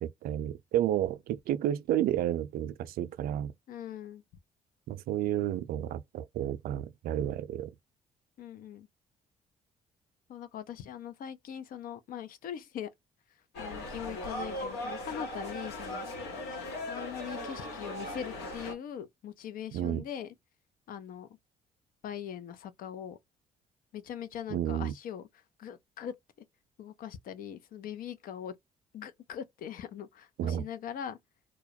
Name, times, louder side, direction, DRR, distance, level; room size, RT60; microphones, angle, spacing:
voice 1, 0.0-3.5 4.9-7.7 19.7-20.0 24.5-24.9 30.4-30.6, right 11 dB, 65° right, 0.4 m, -31 dB
voice 2, 3.7-4.2 8.4-8.9 10.3-12.9 13.6-16.1 16.9-20.3 20.9-21.3 22.0-23.2 23.9-25.2 25.6-26.1 26.8-28.5 28.9-31.2, left 9 dB, 60° left, 0.5 m, -41 dB
sound 1, 13.5-18.7, left 1 dB, 75° left, 1.0 m, -38 dB
2.2 x 2.1 x 2.7 m
hypercardioid pair, 50°, 17 cm